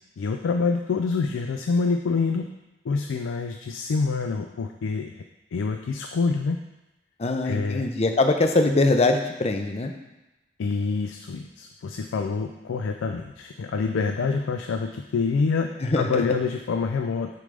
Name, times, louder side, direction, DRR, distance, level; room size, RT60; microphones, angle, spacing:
voice 1, 0.2-2.5 2.9-5.1 5.5-6.6 7.4-7.9 10.6-17.3, left 4 dB, 85° left, 5 dB, 0.4 m, -26 dB
voice 2, 7.2-9.9 15.8-16.2, left 2 dB, 35° left, 6 dB, 0.5 m, -22 dB
6.6 x 3.4 x 5.2 m, 1.0 s
head